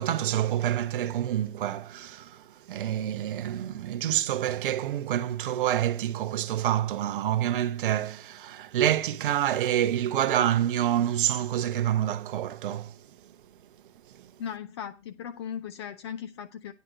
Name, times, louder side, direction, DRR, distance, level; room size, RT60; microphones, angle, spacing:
voice 1, 0.0-13.3 14.1-14.3, right 11 dB, 45° right, 0.9 m, -27 dB
voice 2, 14.4-16.7, left 8 dB, 25° left, 0.4 m, -37 dB
9.4 x 4.7 x 7.6 m
figure-of-eight pair, 120°, 37 cm